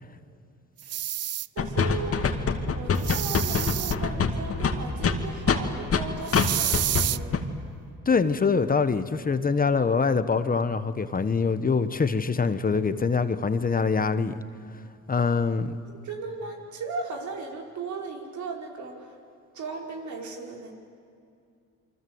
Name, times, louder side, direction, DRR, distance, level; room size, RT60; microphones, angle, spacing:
sound 1, 0.8-1.5 2.9-3.9 6.3-7.2, right 12 dB, 55° right, 0.6 m, -29 dB
voice 1, 1.5-2.3 2.6-7.4 16.0-19.2 19.5-20.7, right 4 dB, 70° right, 1 dB, 5.0 m, -36 dB
sound 2, 1.6-6.0 6.3-6.5 6.7-7.0 7.3-7.4, left 6 dB, 50° left, 2.3 m, -24 dB
voice 2, 8.1-14.3 15.1-15.8, left 5 dB, 30° left, 11 dB, 1.2 m, -24 dB
28.5 x 24.0 x 8.0 m, 2.4 s
cardioid pair, 90°, 30 cm